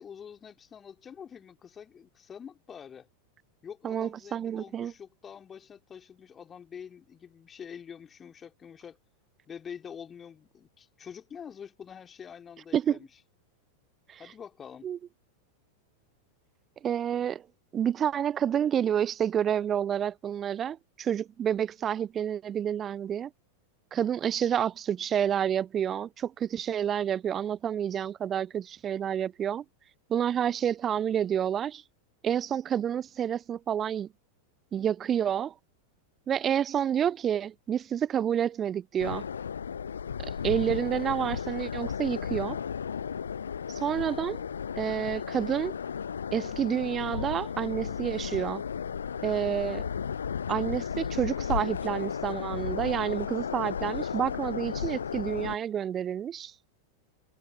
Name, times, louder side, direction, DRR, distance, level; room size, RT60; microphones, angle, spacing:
voice 1, 0.0-3.1 3.6-9.0 9.5-13.1 14.2-14.9, left 7 dB, 20° left, 3.1 m, -46 dB
voice 2, 3.8-4.9 12.7-13.0 14.1-14.2 14.8-15.0 16.8-17.4 17.7-23.3 23.9-29.6 30.1-31.8 32.2-34.1 34.7-35.5 36.3-39.2 40.2-42.6 43.7-44.4 44.8-45.8 46.3-48.6 49.2-49.8 50.5-56.5, right 9 dB, 25° right, 0.3 m, -29 dB
sound 1, 39.0-55.6, left 7 dB, 70° left, 0.6 m, -34 dB
figure-of-eight pair, 90°, 0 cm